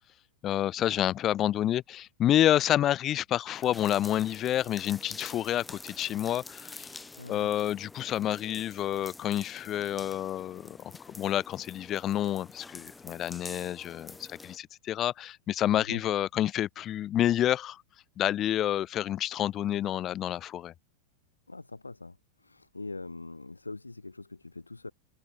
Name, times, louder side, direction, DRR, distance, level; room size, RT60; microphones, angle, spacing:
voice 1, 0.4-7.0 7.3-17.8 18.2-20.7, left 12 dB, 30° left, 0.3 m, -29 dB
sound 1, 3.5-14.6, left 3 dB, 10° left, 1.8 m, -48 dB
voice 2, 7.1-7.5 15.8-16.0 21.5-24.9, left 3 dB, 80° left, 1.1 m, -42 dB
figure-of-eight pair, 90°, 0 cm